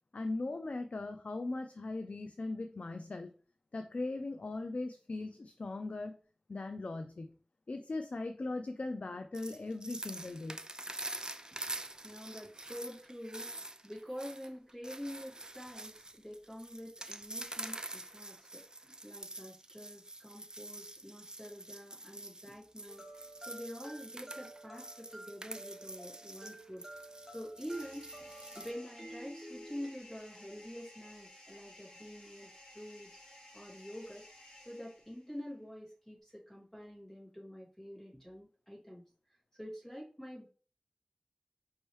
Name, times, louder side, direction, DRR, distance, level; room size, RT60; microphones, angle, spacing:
voice 1, 0.1-3.3 3.7-6.1 6.5-7.3 7.7-10.6, left 2 dB, 70° left, 7 dB, 0.4 m, -39 dB
sound 1, 9.3-28.7, right 2 dB, 30° right, 0.4 m, -46 dB
voice 2, 12.0-13.5 13.8-26.8 27.2-28.3 28.5-33.2 33.5-34.3 34.6-39.0 39.6-40.5, equal, 15° left, -5 dB, 2.3 m, -47 dB
sound 2, 22.9-29.9, right 1 dB, 10° right, 1.6 m, -51 dB
sound 3, 27.6-35.4, left 1 dB, 45° left, 2.2 m, -56 dB
5.3 x 3.1 x 3.2 m, 0.40 s
wide cardioid pair, 50°, 2 cm